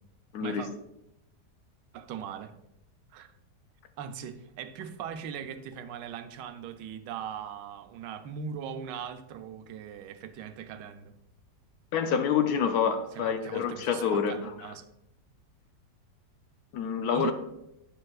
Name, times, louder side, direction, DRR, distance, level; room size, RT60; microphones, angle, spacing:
voice 1, 1.9-2.5 3.1-3.3 4.0-11.1 13.1-14.9 17.1-17.3, right 8 dB, 90° right, 9 dB, 1.2 m, -40 dB
voice 2, 11.9-14.7 16.7-17.3, left 7 dB, 70° left, 7 dB, 1.0 m, -27 dB
9.2 x 6.4 x 2.4 m, 0.84 s
omnidirectional pair, 1.9 m